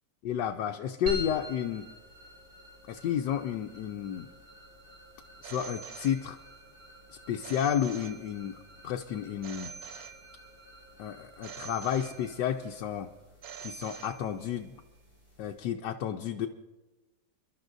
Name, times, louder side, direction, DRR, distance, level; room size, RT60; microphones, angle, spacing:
voice 1, 0.2-1.9 2.9-4.3 5.4-6.4 7.3-8.6 8.8-9.7 11.0-13.1 13.6-14.7 15.4-16.5, left 9 dB, 85° left, 3 dB, 1.3 m, -31 dB
sound 1, 1.1-15.7, equal, 35° right, 6.1 m, -47 dB
Telephone, 5.4-6.7 7.4-8.7 9.4-10.7 11.4-12.7 13.4-14.7, right 6 dB, 65° right, 1.2 m, -46 dB
29.0 x 12.0 x 2.6 m, 1.1 s
omnidirectional pair, 1.8 m